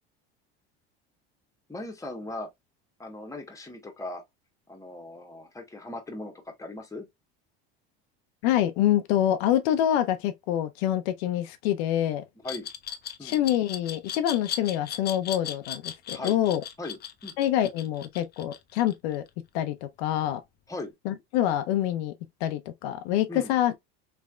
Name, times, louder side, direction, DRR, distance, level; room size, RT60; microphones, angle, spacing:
voice 1, 1.7-2.5 3.0-4.2 4.7-7.1 12.4-12.7 13.2-13.3 16.1-16.4 16.8-17.3 20.7-20.9 23.3-23.5, left 2 dB, 10° left, 1.0 m, -38 dB
voice 2, 8.4-12.2 13.2-16.6 17.4-19.2 19.5-20.4 21.0-22.1 22.4-23.8, left 12 dB, 80° left, 0.5 m, -26 dB
Glass, 12.5-19.3, left 9 dB, 30° left, 0.5 m, -37 dB
3.4 x 3.2 x 2.2 m
supercardioid pair, 95°, 31 cm